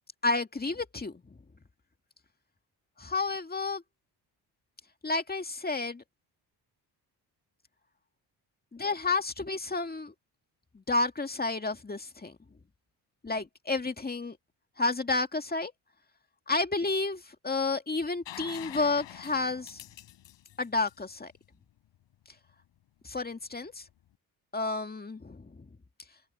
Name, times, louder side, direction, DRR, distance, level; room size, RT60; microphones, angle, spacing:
voice 1, 0.2-1.4 3.0-3.8 5.0-6.0 8.7-10.1 10.7-12.4 13.2-14.4 14.8-15.7 16.5-19.8 20.6-21.3 23.0-23.8 24.5-25.7, left 3 dB, 20° left, 2.2 m, -31 dB
sound 1, 18.3-22.0 23.8-23.9, left 12 dB, 85° left, 7.4 m, -46 dB
open air
cardioid pair, 80°, 42 cm